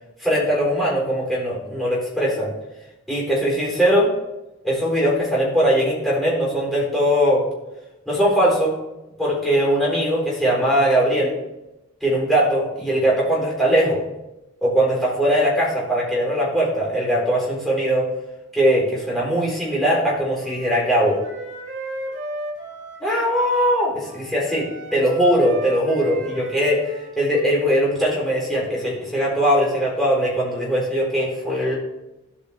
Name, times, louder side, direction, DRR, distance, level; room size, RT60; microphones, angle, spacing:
voice 1, 0.2-2.5 3.1-4.1 4.6-7.4 8.1-8.8 9.2-11.3 12.0-14.0 14.6-18.1 18.5-21.2 23.0-31.7, equal, ahead, -6 dB, 4.0 m, -20 dB
Wind instrument woodwind instrument, 20.3-23.8 24.0-27.6, right 1 dB, 60° right, 2.4 m, -35 dB
16.5 x 5.5 x 3.6 m, 0.96 s
head